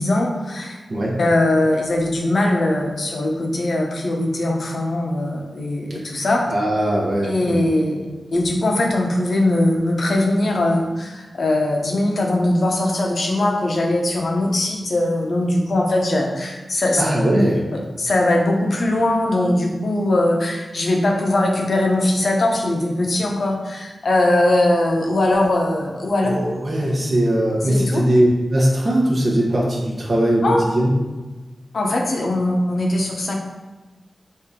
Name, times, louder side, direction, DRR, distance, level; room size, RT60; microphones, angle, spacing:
voice 1, 0.0-0.8 1.2-6.5 7.2-17.0 18.0-26.3 27.6-28.0 30.4-30.6 31.7-33.4, left 1 dB, 60° left, 0 dB, 0.7 m, -20 dB
voice 2, 6.5-7.7 17.0-17.6 26.2-31.0, right 1 dB, 45° right, -4 dB, 0.9 m, -19 dB
4.6 x 2.7 x 3.6 m, 1.2 s
wide cardioid pair, 125°, 0 cm